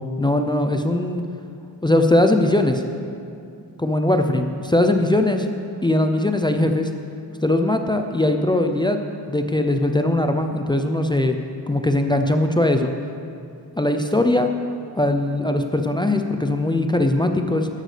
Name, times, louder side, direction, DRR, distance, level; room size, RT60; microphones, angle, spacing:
voice 1, 0.2-1.2 1.8-2.8 3.8-5.5 5.8-6.9 7.4-9.0 9.3-11.4 11.7-12.9 13.8-14.5 15.0-17.7, left 1 dB, 10° left, 5 dB, 0.5 m, -20 dB
13.0 x 10.5 x 3.3 m, 2.5 s
wide cardioid pair, 100°, 40 cm